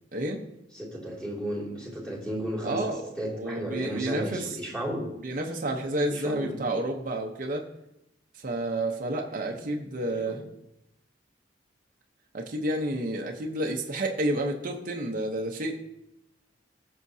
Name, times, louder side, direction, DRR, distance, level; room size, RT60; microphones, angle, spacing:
voice 1, 0.1-0.4 2.6-3.0 3.3-4.6 5.2-7.6 8.4-10.4 12.3-15.8, right 1 dB, 50° right, 1 dB, 0.9 m, -30 dB
voice 2, 0.7-5.1 6.1-6.6 9.3-9.7 10.0-10.4, right 1 dB, 5° left, -5 dB, 2.7 m, -34 dB
17.0 x 6.6 x 2.8 m, 0.85 s
head